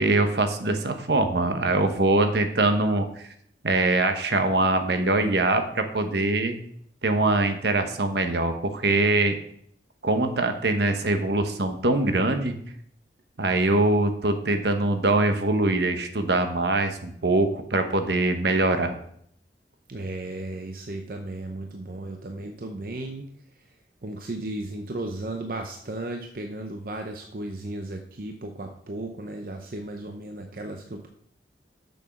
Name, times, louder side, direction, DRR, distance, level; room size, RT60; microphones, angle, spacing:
voice 1, 0.0-3.0 3.6-6.6 7.0-9.4 10.0-12.5 13.4-19.0, right 2 dB, 70° right, 7 dB, 1.0 m, -23 dB
voice 2, 19.9-23.3 24.0-31.1, right 2 dB, 50° right, 4 dB, 0.7 m, -35 dB
7.0 x 6.3 x 5.9 m, 0.68 s
head